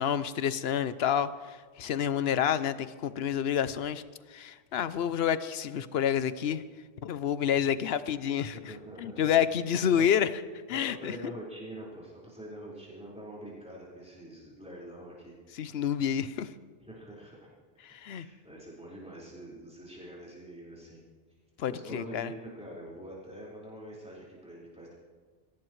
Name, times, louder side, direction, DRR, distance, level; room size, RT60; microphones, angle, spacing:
voice 1, 0.0-4.0 4.3-6.6 7.0-8.7 9.0-10.3 10.7-11.1 15.6-16.5 17.8-18.3 21.6-22.3, left 9 dB, 80° left, 14 dB, 0.9 m, -29 dB
voice 2, 8.4-9.3 9.6-10.1 10.7-15.4 16.9-17.4 18.1-21.0 21.7-24.9, right 1 dB, 5° right, -7 dB, 4.8 m, -45 dB
23.5 x 16.5 x 3.2 m, 1.4 s
omnidirectional pair, 1.0 m